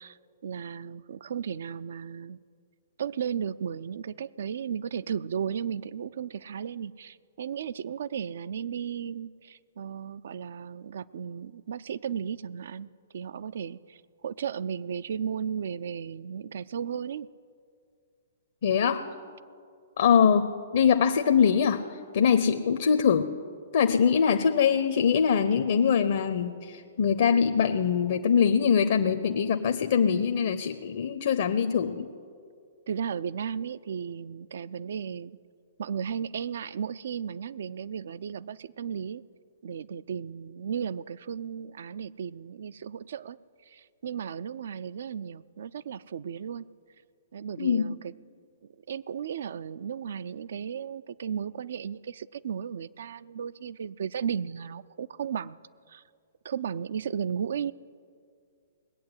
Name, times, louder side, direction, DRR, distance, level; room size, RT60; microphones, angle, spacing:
voice 1, 0.0-2.4 3.0-17.3 32.9-35.4 35.8-39.2 39.6-43.4 43.7-46.6 47.3-48.1 48.9-55.6 55.9-56.0 56.4-57.7, right 7 dB, 65° right, 18 dB, 0.4 m, -35 dB
voice 2, 18.6-19.1 20.0-23.3 23.7-32.1 47.6-47.9, left 7 dB, 60° left, 8 dB, 0.7 m, -23 dB
20.0 x 8.6 x 8.0 m, 2.3 s
hypercardioid pair, 120°, 0 cm